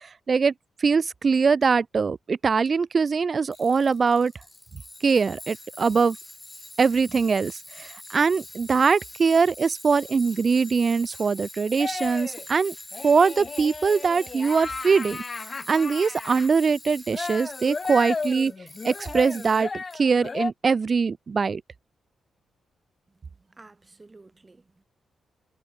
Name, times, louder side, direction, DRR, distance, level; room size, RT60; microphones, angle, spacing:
voice 1, 0.8-4.3 5.0-6.2 6.8-12.7 13.0-15.2 15.7-18.5 18.8-21.6, right 5 dB, 50° right, 0.3 m, -22 dB
Tools, 3.5-20.0, left 1 dB, 15° left, 3.3 m, -44 dB
sound 1, 11.8-12.5 12.9-16.5 17.1-20.5, left 4 dB, 40° left, 3.4 m, -34 dB
voice 2, 23.1-24.8, right 3 dB, 30° right, 5.7 m, -53 dB
supercardioid pair, 50°, 0 cm